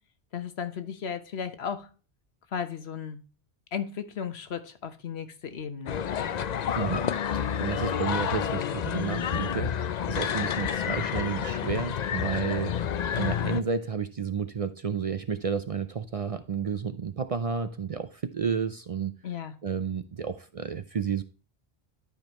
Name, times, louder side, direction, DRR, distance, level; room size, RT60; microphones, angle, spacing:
voice 1, 0.3-1.9 2.5-3.2 3.7-6.0 19.2-19.6, left 7 dB, 85° left, 1.2 m, -35 dB
sound 1, 5.9-13.6, left 8 dB, 55° left, 0.5 m, -29 dB
voice 2, 6.8-19.2 19.6-21.2, right 6 dB, 50° right, 0.5 m, -31 dB
11.5 x 5.2 x 3.0 m
omnidirectional pair, 1.0 m